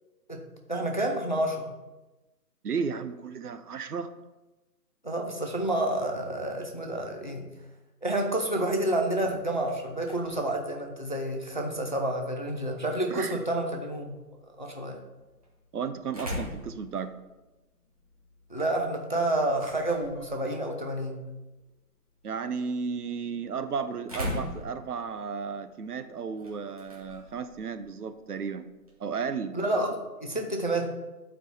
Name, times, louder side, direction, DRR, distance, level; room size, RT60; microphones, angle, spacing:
voice 1, 0.3-1.7 5.0-7.5 8.0-14.1 14.6-15.0 18.5-21.2 29.5-29.9 30.2-30.9, right 1 dB, 30° left, 2 dB, 0.6 m, -29 dB
voice 2, 2.6-4.1 13.1-13.4 15.7-17.2 22.2-28.7 29.0-29.6, right 5 dB, 70° right, 11 dB, 0.8 m, -34 dB
sound 1, 9.2-29.1, left 1 dB, 20° right, 1.2 m, -44 dB
11.0 x 4.6 x 4.1 m, 1.1 s
hypercardioid pair, 180°, 48 cm